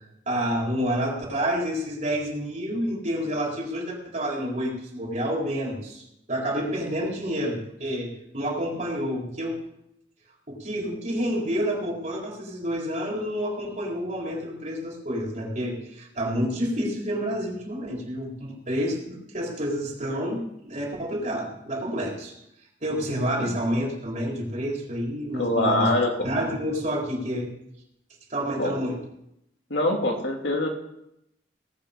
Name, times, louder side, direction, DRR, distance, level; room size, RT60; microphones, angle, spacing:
voice 1, 0.3-6.0 6.3-9.6 10.5-22.3 22.8-25.9 26.2-27.5 28.3-29.0, equal, 45° right, -2 dB, 4.3 m, -29 dB
voice 2, 25.3-26.3 28.6-28.7 29.7-30.7, left 1 dB, 85° left, 1 dB, 2.6 m, -24 dB
19.0 x 8.6 x 5.3 m, 0.81 s
head